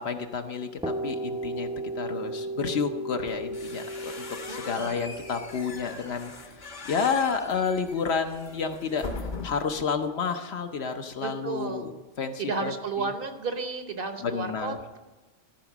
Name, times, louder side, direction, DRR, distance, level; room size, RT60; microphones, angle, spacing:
voice 1, 0.0-1.7 2.0-11.9 12.2-13.1 14.2-14.8, left 5 dB, 65° left, 6 dB, 1.0 m, -30 dB
sound 1, 0.8-8.5, right 1 dB, 5° right, 0.5 m, -36 dB
sound 2, 3.3-9.8, left 3 dB, 40° left, 1.0 m, -41 dB
voice 2, 4.5-4.9 11.2-11.9 12.4-15.0, right 4 dB, 55° right, 7 dB, 1.0 m, -33 dB
13.5 x 4.9 x 7.2 m, 1.2 s
omnidirectional pair, 1.2 m